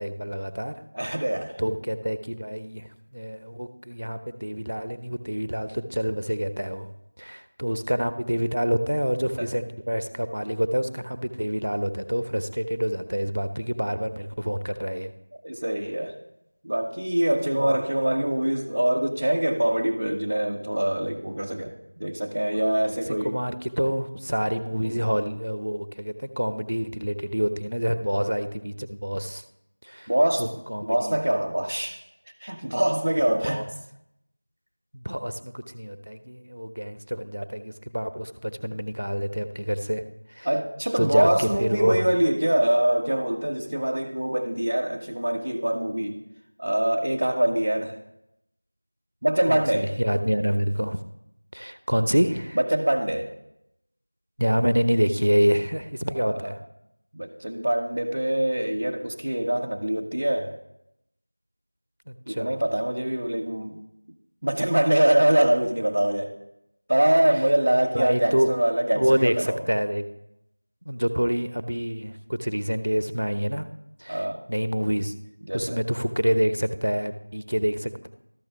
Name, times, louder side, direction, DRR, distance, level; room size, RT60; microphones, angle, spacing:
voice 1, 0.0-0.7 1.6-6.9 7.2-15.1 17.6-17.8 23.2-29.4 29.8-30.1 30.4-31.4 33.4-33.6 34.9-40.5 41.0-42.1 49.5-51.0 51.5-52.6 54.4-56.6 62.1-62.5 67.9-68.5 69.0-70.0 70.8-73.7 74.0-75.1 75.5-78.1, equal, 75° right, 9 dB, 0.9 m, -27 dB
voice 2, 0.9-1.6 9.4-9.5 15.4-16.1 16.6-23.4 24.8-24.9 30.1-30.5 30.9-32.0 32.4-33.7 40.4-46.2 46.6-48.0 49.2-49.9 52.5-53.3 56.2-56.4 57.1-60.6 62.3-63.8 64.4-66.3 66.9-69.6 74.1-74.4 75.4-75.8, right 1 dB, 40° right, -2 dB, 0.8 m, -24 dB
12.5 x 6.0 x 5.7 m, 0.84 s
figure-of-eight pair, 180°, 0 cm